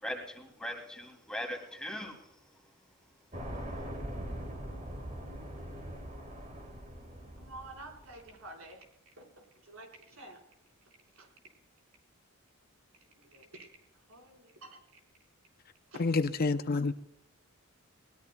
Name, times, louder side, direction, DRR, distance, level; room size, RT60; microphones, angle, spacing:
voice 1, 0.0-2.2, equal, 5° left, 2.8 m, -39 dB
sound 1, 3.3-8.3, equal, 40° right, 3.8 m, -42 dB
voice 2, 7.4-8.8 9.2-10.4 10.9-11.3 13.2-13.7 13.9-14.8 15.9-16.0, right 2 dB, 75° right, 4.6 m, -50 dB
voice 3, 16.0-16.9, left 3 dB, 45° left, 0.6 m, -28 dB
21.5 x 20.0 x 2.3 m
head